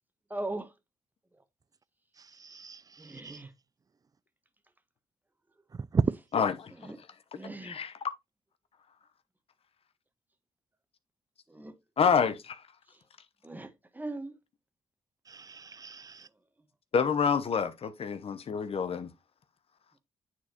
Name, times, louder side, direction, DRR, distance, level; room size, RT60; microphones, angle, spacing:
voice 1, 0.3-0.7 3.0-3.5 6.8-7.0 7.3-7.8 11.5-11.7 12.1-12.2 13.4-14.4, right 2 dB, 15° right, 1.3 m, -39 dB
voice 2, 2.4-3.4 5.9-6.0 15.3-16.3, right 5 dB, 30° right, 0.5 m, -33 dB
voice 3, 6.3-6.7 7.6-8.1 12.0-12.6 16.9-19.1, left 6 dB, 55° left, 0.9 m, -27 dB
9.3 x 4.3 x 2.9 m
cardioid pair, 70°, 12 cm